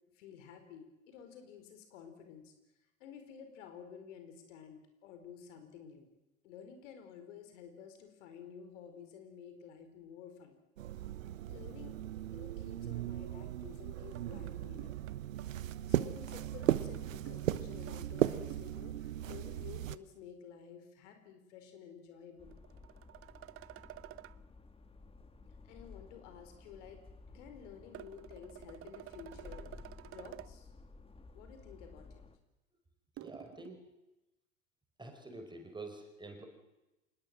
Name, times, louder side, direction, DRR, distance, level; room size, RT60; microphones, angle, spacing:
voice 1, 0.1-2.5 3.0-6.1 6.4-10.6 11.5-12.0 12.3-14.9 15.9-22.5 25.6-27.0 27.3-29.7 30.0-30.7 31.3-32.2, left 7 dB, 65° left, 7 dB, 4.8 m, -52 dB
sound 1, 10.8-20.0, right 12 dB, 75° right, 1.1 m, -37 dB
sound 2, 14.2-18.7 22.5-24.4 27.9-30.6 33.2-33.7, right 14 dB, 35° right, 0.9 m, -51 dB
sound 3, 22.4-32.4, left 3 dB, 15° left, 2.1 m, -55 dB
voice 2, 33.2-33.8 35.0-36.5, right 2 dB, 10° right, 4 dB, 4.9 m, -47 dB
27.0 x 20.0 x 7.7 m, 0.96 s
hypercardioid pair, 85°, 39 cm